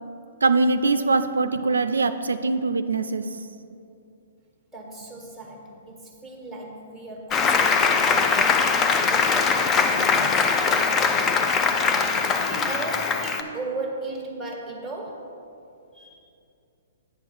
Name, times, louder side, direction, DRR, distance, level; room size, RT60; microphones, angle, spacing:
voice 1, 0.4-3.2, right 3 dB, 85° right, 10 dB, 0.4 m, -22 dB
voice 2, 4.7-8.8 9.1-11.7 12.3-15.3 15.9-16.2, right 2 dB, ahead, -1 dB, 1.5 m, -36 dB
Applause, 7.3-13.4, left 5 dB, 20° left, 0.5 m, -21 dB
8.9 x 4.6 x 6.3 m, 2.6 s
hypercardioid pair, 125°, 0 cm